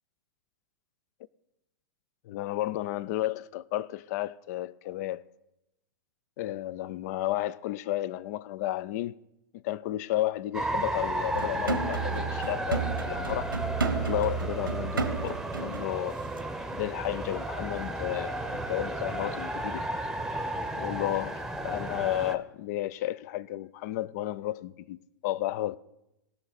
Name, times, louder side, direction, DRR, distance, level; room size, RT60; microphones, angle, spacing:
voice 1, 2.2-5.2 6.4-9.2 9.5-13.5 14.0-16.2 16.7-19.9 20.7-25.8, left 14 dB, 50° left, 0.5 m, -32 dB
sound 1, 10.5-22.4, right 1 dB, 5° right, 0.9 m, -34 dB
sound 2, 11.3-15.9 16.3-16.4, right 5 dB, 85° right, 1.1 m, -32 dB
19.0 x 6.6 x 4.1 m
hypercardioid pair, 105°, 11 cm